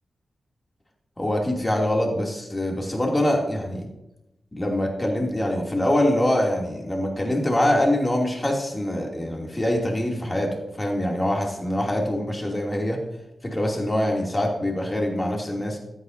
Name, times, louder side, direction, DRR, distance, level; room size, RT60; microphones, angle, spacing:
voice 1, 1.2-3.9 4.5-13.0 13.4-15.8, left 1 dB, 25° left, 0 dB, 2.6 m, -24 dB
13.0 x 9.4 x 2.7 m, 0.92 s
supercardioid pair, 40°, 0 cm